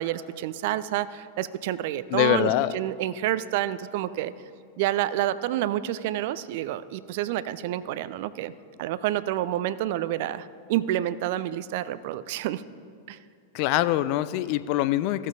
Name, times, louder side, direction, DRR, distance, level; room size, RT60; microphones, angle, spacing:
voice 1, 0.0-4.3 4.8-8.5 8.8-12.6 13.1-13.2, right 13 dB, 50° right, 16 dB, 0.3 m, -28 dB
voice 2, 2.1-2.8 13.5-15.3, left 14 dB, 45° left, 15 dB, 0.3 m, -24 dB
15.0 x 7.3 x 2.6 m, 2.2 s
figure-of-eight pair, 90°, 0 cm